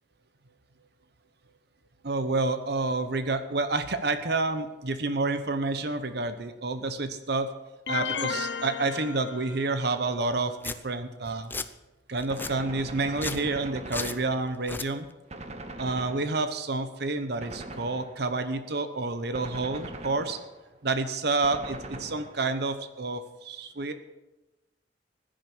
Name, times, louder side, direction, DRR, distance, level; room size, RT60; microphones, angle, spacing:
voice 1, 2.0-7.5 7.9-11.5 12.1-15.1 15.8-20.4 20.8-23.9, right 3 dB, 60° right, 10 dB, 1.0 m, -29 dB
sound 1, 7.9-10.0, left 6 dB, 75° left, 0.8 m, -33 dB
Domestic sounds home sounds, 10.2-10.3 10.6-10.8 11.3-11.7 12.2-12.5 13.1-13.5 13.9-14.2 14.6-14.9, left 3 dB, 10° left, 0.5 m, -34 dB
Gunshot gunfire, 12.3-14.8 15.3-16.7 17.4-18.4 19.3-20.7 21.4-22.7, right 2 dB, 40° right, 1.1 m, -41 dB
15.0 x 10.0 x 6.3 m, 1.1 s
head